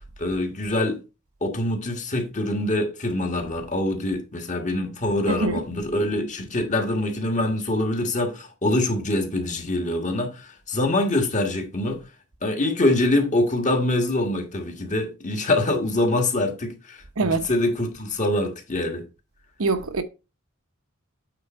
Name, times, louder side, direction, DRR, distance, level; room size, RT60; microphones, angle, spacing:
voice 1, 0.2-1.0 1.4-12.0 12.4-19.0, left 1 dB, 35° left, 1.6 m, -24 dB
voice 2, 17.2-17.5 19.6-20.0, right 3 dB, 80° right, 0.9 m, -24 dB
8.7 x 4.0 x 4.4 m
head